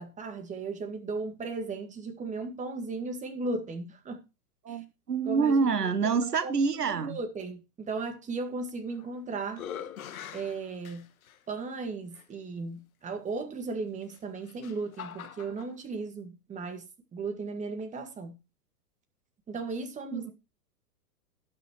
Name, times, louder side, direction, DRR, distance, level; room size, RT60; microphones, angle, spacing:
voice 1, 0.0-4.2 4.7-4.8 5.2-6.6 6.9-9.6 10.3-11.0 11.5-18.4 19.5-20.3, right 3 dB, 15° right, 1.9 m, -36 dB
voice 2, 4.6-7.2 20.1-20.3, right 5 dB, 80° right, 1.2 m, -27 dB
sound 1, 8.7-9.1 9.5-11.4 12.1-12.2 14.0-15.7, left 9 dB, 60° left, 1.4 m, -43 dB
18.0 x 6.3 x 3.1 m
figure-of-eight pair, 105°, 47 cm